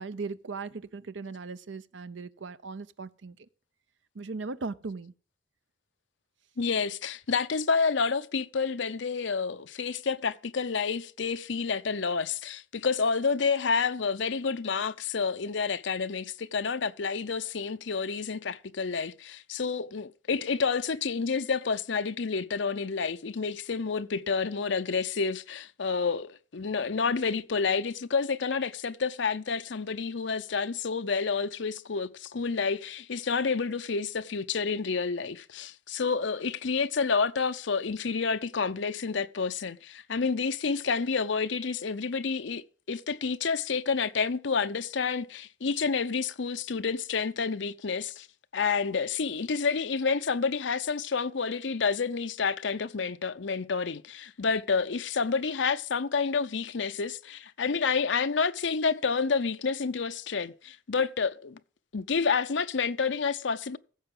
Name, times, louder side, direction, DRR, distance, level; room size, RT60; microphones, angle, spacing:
voice 1, 0.0-3.4 4.1-5.1, right 4 dB, 75° right, 0.6 m, -38 dB
voice 2, 6.6-48.3 48.5-61.6 61.9-63.8, left 5 dB, 70° left, 0.7 m, -29 dB
16.0 x 6.9 x 3.8 m
head